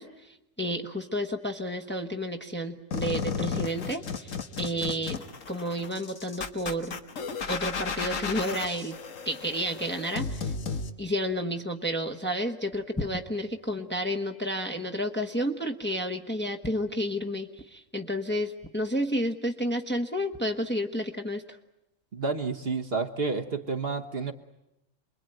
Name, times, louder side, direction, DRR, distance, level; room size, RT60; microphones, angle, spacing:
voice 1, 0.0-4.3 4.6-5.2 5.5-7.0 7.5-9.0 9.2-10.5 11.0-21.4, equal, 10° left, 5 dB, 1.1 m, -31 dB
sound 1, 2.9-10.9, left 5 dB, 85° left, 1.7 m, -34 dB
voice 2, 22.1-24.3, right 4 dB, 50° right, 4 dB, 1.4 m, -30 dB
28.0 x 22.0 x 9.1 m, 0.90 s
omnidirectional pair, 1.3 m